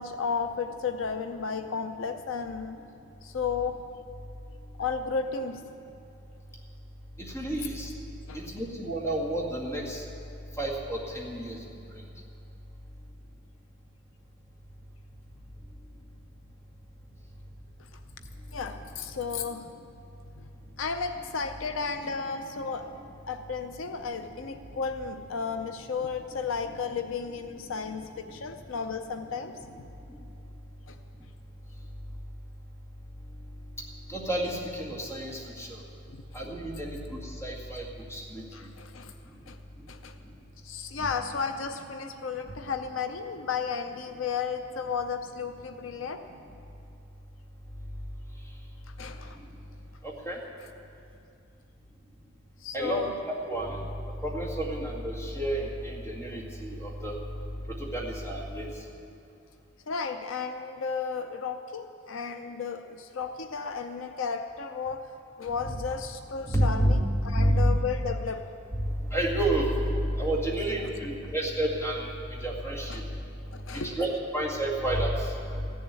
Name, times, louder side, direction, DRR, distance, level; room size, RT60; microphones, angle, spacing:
voice 1, 0.0-2.8 3.2-3.8 4.8-5.6 8.3-8.5 18.5-19.7 20.4-20.5 20.8-22.9 23.3-29.5 30.9-31.0 36.1-36.2 38.5-39.1 39.5-39.6 39.9-40.2 40.6-46.2 48.9-49.4 52.6-53.1 59.9-65.1 65.4-68.5 72.9-73.0 73.5-74.0, left 5 dB, 70° left, 8 dB, 0.6 m, -33 dB
voice 2, 7.2-7.9 8.3-10.1 10.6-11.6 22.0-22.3 24.2-24.3 26.7-26.8 34.1-35.8 36.3-38.7 41.0-41.1 50.0-50.4 52.7-53.8 54.2-57.2 57.7-58.7 65.7-65.8 66.5-66.9 67.4-67.7 68.8-73.2 73.7-75.7, right 1 dB, 15° left, -3 dB, 2.1 m, -30 dB
15.0 x 7.2 x 9.5 m, 2.6 s
head